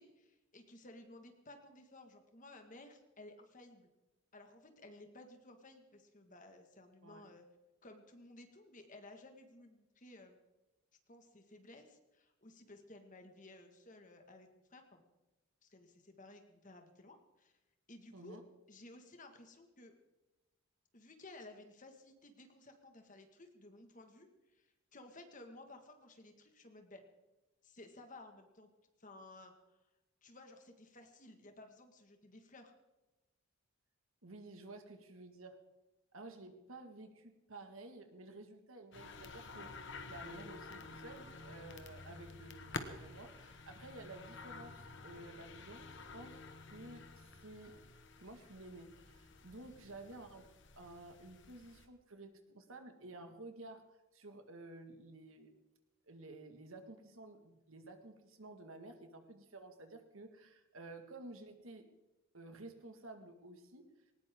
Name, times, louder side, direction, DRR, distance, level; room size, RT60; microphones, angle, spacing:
voice 1, 0.0-3.9 4.3-7.5 7.8-10.4 11.1-15.1 15.6-17.5 17.9-18.4 18.7-19.9 20.9-27.0 27.6-28.7 29.0-29.8 30.2-32.7, left 2 dB, 35° left, 5 dB, 1.9 m, -56 dB
voice 2, 18.1-18.4 34.2-35.6 36.1-46.4 46.7-47.7 48.2-50.4 50.7-55.5 56.1-61.8 62.3-63.9, right 2 dB, 70° right, 6 dB, 1.9 m, -53 dB
sound 1, 38.9-51.9, left 3 dB, 55° left, 1.4 m, -51 dB
19.0 x 19.0 x 3.8 m, 1.1 s
head